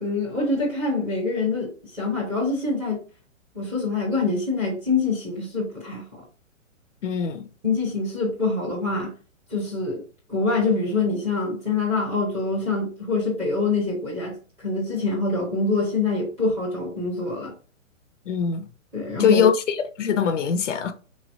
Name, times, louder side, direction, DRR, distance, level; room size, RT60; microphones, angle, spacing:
voice 1, 0.0-3.0 3.5-6.2 7.6-9.1 9.5-10.0 10.3-17.5 18.9-19.4, left 3 dB, 5° right, 0.6 m, -25 dB
voice 2, 7.0-7.5 18.3-18.7 19.2-20.9, left 7 dB, 65° left, 0.6 m, -22 dB
3.9 x 3.2 x 2.6 m
hypercardioid pair, 165°, 40 cm